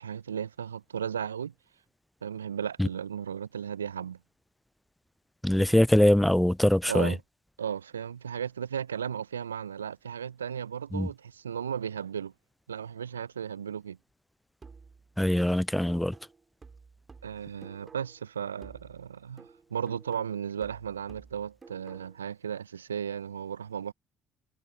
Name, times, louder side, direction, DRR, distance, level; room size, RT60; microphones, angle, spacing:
voice 1, 0.0-1.5 2.2-4.2 6.9-7.2 7.6-12.3 12.7-14.0 17.2-19.5 19.7-23.9, right 8 dB, 85° right, 0.4 m, -35 dB
voice 2, 5.4-7.1 10.9-11.1 15.2-16.1, left 1 dB, 5° left, 0.3 m, -23 dB
sound 1, 14.6-18.3 18.6-22.3, right 4 dB, 30° right, 3.7 m, -53 dB
figure-of-eight pair, 50°, 0 cm